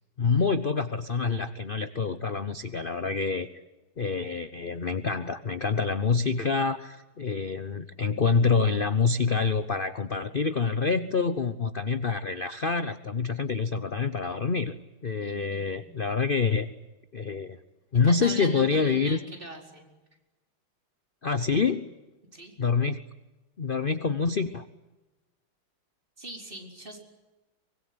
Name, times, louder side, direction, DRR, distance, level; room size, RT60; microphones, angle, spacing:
voice 1, 0.2-3.5 4.0-14.7 15.0-16.7 17.1-17.6 17.9-19.2 21.2-21.9 22.6-23.0 23.6-24.6, left 5 dB, 45° left, 12 dB, 0.7 m, -26 dB
voice 2, 15.1-15.8 18.0-19.9 22.3-22.5 26.2-27.0, right 1 dB, 25° right, 2 dB, 5.0 m, -41 dB
24.5 x 22.0 x 9.7 m, 1.1 s
omnidirectional pair, 2.3 m